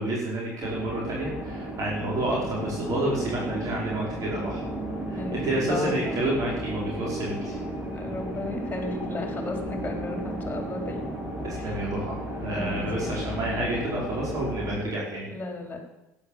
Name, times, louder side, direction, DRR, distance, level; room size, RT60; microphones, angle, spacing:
voice 1, 0.0-4.6 5.1-7.6 11.4-15.3, right 1 dB, 45° right, -4 dB, 5.2 m, -29 dB
sound 1, 0.6-14.8, right 1 dB, 20° right, 6.0 m, -34 dB
voice 2, 5.1-6.2 7.9-11.1 11.6-11.8 12.5-13.4 15.3-15.8, left 2 dB, 20° left, 3 dB, 4.2 m, -34 dB
12.0 x 10.5 x 7.5 m, 0.95 s
hypercardioid pair, 65°, 8 cm